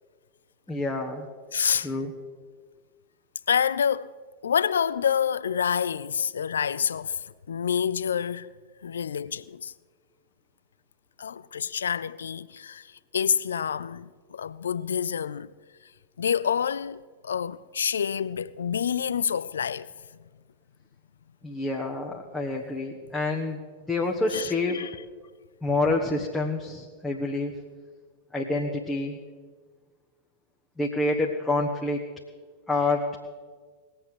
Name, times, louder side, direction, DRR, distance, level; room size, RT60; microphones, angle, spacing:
voice 1, 0.7-1.3 1.8-2.1 21.4-23.6 23.8-24.9 25.6-27.5 28.3-29.2 30.8-32.0 32.7-33.2, left 2 dB, 10° left, 1.4 m, -27 dB
voice 2, 1.5-1.9 3.5-4.1 4.4-8.5 8.8-9.7 11.2-15.5 16.2-19.9 24.3-25.0, left 7 dB, 70° left, 0.4 m, -28 dB
20.0 x 8.3 x 7.7 m
figure-of-eight pair, 90°, 0 cm